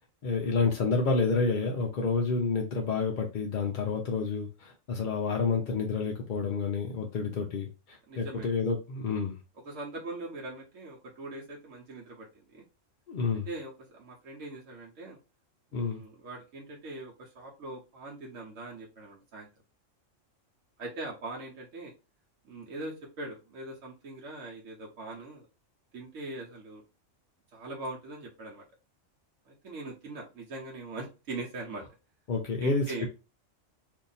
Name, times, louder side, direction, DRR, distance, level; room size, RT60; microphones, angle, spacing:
voice 1, 0.2-9.4 13.1-13.5 15.7-16.0 32.3-33.1, left 4 dB, 55° left, 1 dB, 0.5 m, -29 dB
voice 2, 8.1-8.5 9.6-12.6 13.5-15.2 15.7-19.5 20.8-21.9 22.4-25.5 25.9-26.8 27.5-28.6 29.5-31.8 32.6-33.1, right 2 dB, 80° right, -3 dB, 1.1 m, -41 dB
2.7 x 2.6 x 3.9 m, 0.30 s
omnidirectional pair, 1.3 m